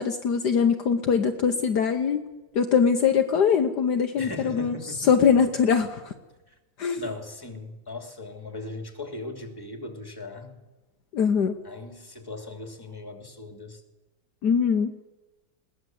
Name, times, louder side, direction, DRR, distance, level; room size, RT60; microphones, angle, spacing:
voice 1, 0.0-2.2 2.5-4.8 5.1-6.1 6.8-7.0 11.1-11.5 14.4-15.0, left 6 dB, 65° left, 6 dB, 1.5 m, -22 dB
voice 2, 4.2-5.3 6.5-6.6 7.0-10.6 11.6-13.8, left 2 dB, 10° left, 5 dB, 2.7 m, -38 dB
21.0 x 18.0 x 7.8 m, 1.1 s
omnidirectional pair, 2.0 m